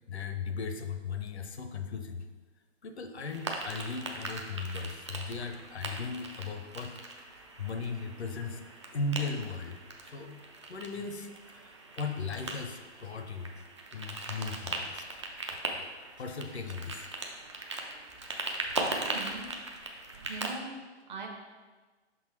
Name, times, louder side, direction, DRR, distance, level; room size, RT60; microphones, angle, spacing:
voice 1, 0.1-2.3 2.8-6.9 7.6-8.6 8.9-9.8 10.1-10.4 10.7-13.5 13.9-15.2 15.5-15.8 16.2-17.1, left 4 dB, 65° left, 7 dB, 0.7 m, -37 dB
sound 1, 3.2-20.5, right 2 dB, 25° right, 0.4 m, -39 dB
voice 2, 18.9-19.5 20.3-20.7 21.1-21.3, right 4 dB, 40° right, 0 dB, 1.1 m, -40 dB
5.6 x 3.9 x 4.3 m, 1.3 s
figure-of-eight pair, 130°, 35 cm